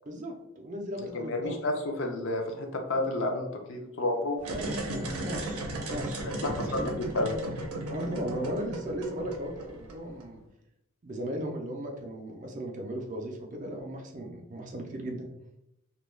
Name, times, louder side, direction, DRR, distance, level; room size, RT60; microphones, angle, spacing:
voice 1, 0.1-1.6 4.4-6.9 7.8-10.4 11.0-15.3, right 1 dB, 35° right, 1 dB, 0.4 m, -36 dB
voice 2, 1.0-4.4 6.2-7.3, left 2 dB, 60° left, 3 dB, 0.4 m, -31 dB
sound 1, 4.4-10.2, right 1 dB, 90° right, 0.6 m, -36 dB
2.2 x 2.2 x 3.1 m, 0.85 s
head